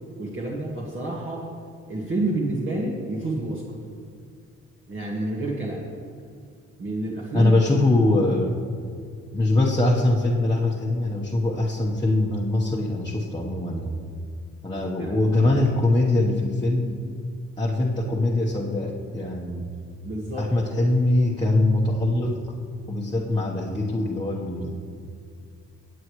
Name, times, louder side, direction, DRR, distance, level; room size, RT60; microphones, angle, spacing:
voice 1, 0.2-1.5 1.9-3.8 4.9-5.8 6.8-7.7 15.0-15.1 20.0-20.5 20.8-20.9, right 2 dB, 40° right, -4 dB, 1.8 m, -29 dB
voice 2, 7.3-8.6 9.3-14.0 14.6-17.0 17.6-19.7 20.3-22.4 22.9-24.8, left 2 dB, 15° left, -5 dB, 1.1 m, -22 dB
18.5 x 8.3 x 3.2 m, 2.3 s
cardioid pair, 90°, 30 cm